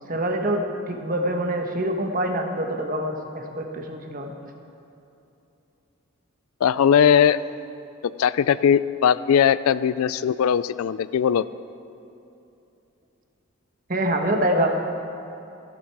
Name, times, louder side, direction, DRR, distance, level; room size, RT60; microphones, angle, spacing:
voice 1, 0.1-4.3 13.9-14.7, right 1 dB, 40° right, 3 dB, 1.3 m, -25 dB
voice 2, 6.6-7.4 8.2-11.4, left 8 dB, 75° left, 17 dB, 0.3 m, -19 dB
16.5 x 12.0 x 4.7 m, 2.8 s
head